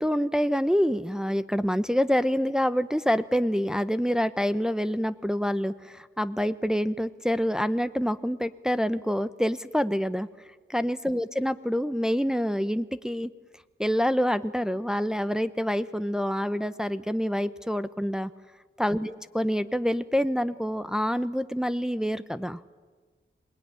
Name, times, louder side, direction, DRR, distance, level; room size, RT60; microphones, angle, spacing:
voice 1, 0.0-10.3 10.7-13.3 13.8-18.3 18.8-22.6, equal, 5° right, 12 dB, 0.8 m, -26 dB
26.5 x 20.0 x 9.7 m, 1.4 s
wide cardioid pair, 70°, 20 cm